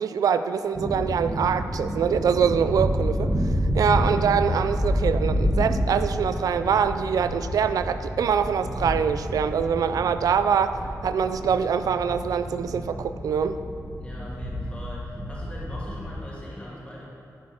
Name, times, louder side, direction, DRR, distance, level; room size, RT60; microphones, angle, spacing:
voice 1, 0.0-13.6, right 7 dB, 75° right, 11 dB, 0.3 m, -24 dB
sound 1, 0.7-16.1, equal, 20° right, 1.3 m, -29 dB
voice 2, 14.0-17.1, left 1 dB, 20° left, -5 dB, 1.7 m, -41 dB
10.5 x 4.4 x 5.6 m, 2.6 s
wide cardioid pair, 150°, 6 cm